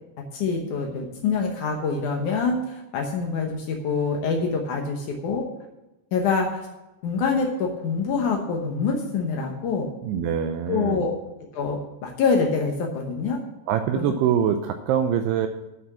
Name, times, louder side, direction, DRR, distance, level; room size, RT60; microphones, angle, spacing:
voice 1, 0.3-5.5 6.1-6.7 7.0-9.9 10.7-11.1 11.5-13.4 14.0-14.1, left 4 dB, 85° left, 1 dB, 1.7 m, -25 dB
voice 2, 10.0-11.0 13.7-15.5, right 8 dB, 90° right, 7 dB, 2.3 m, -24 dB
11.0 x 6.0 x 7.2 m, 0.98 s
omnidirectional pair, 5.3 m